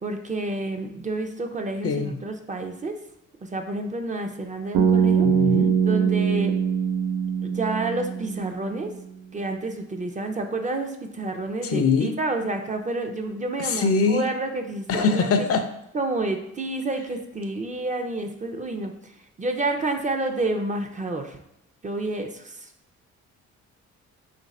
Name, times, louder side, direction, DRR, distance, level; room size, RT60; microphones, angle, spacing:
voice 1, 0.0-3.0 3.4-5.3 5.8-6.6 7.4-8.9 9.3-15.3 15.9-19.1 19.4-21.4 21.8-22.7, right 2 dB, 25° right, 4 dB, 0.5 m, -29 dB
voice 2, 1.8-2.2 5.2-5.7 11.6-12.1 13.6-14.3 14.9-15.6, left 5 dB, 50° left, 7 dB, 0.5 m, -22 dB
Bass guitar, 4.7-8.8, right 7 dB, 85° right, 0.6 m, -22 dB
3.8 x 2.5 x 4.1 m, 0.83 s
cardioid pair, 90°, 30 cm